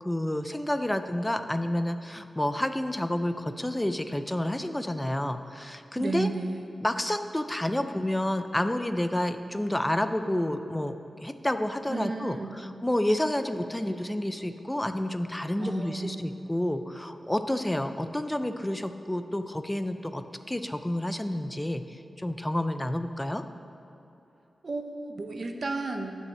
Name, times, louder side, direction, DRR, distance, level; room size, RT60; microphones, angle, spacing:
voice 1, 0.0-6.3 6.8-11.0 11.2-23.4, left 1 dB, 10° left, 9 dB, 0.4 m, -29 dB
voice 2, 5.9-6.7 11.9-12.6 15.6-16.2 24.6-26.2, right 3 dB, 50° right, 5 dB, 0.8 m, -33 dB
10.5 x 5.5 x 7.4 m, 2.9 s
wide cardioid pair, 125°, 0 cm